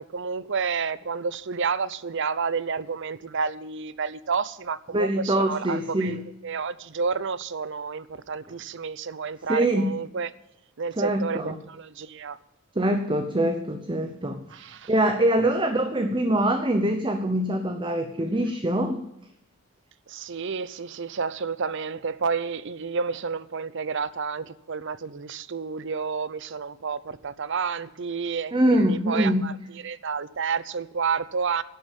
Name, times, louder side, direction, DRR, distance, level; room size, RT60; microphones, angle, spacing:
voice 1, 0.0-6.2 6.4-10.3 10.8-12.4 14.5-14.9 20.1-31.6, right 5 dB, 60° right, 0.7 m, -30 dB
voice 2, 4.9-6.2 9.5-9.8 11.0-11.5 12.8-19.0 28.5-29.5, right 1 dB, 25° right, 0.9 m, -24 dB
11.0 x 8.2 x 9.1 m
head